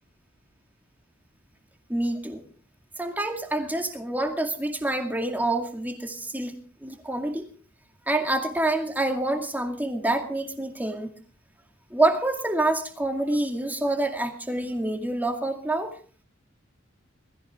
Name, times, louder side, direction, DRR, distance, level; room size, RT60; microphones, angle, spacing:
voice 1, 1.9-2.4 3.0-6.5 6.8-7.4 8.1-11.1 11.9-16.0, right 2 dB, 10° right, 5 dB, 2.2 m, -27 dB
20.5 x 14.5 x 3.7 m, 0.39 s
head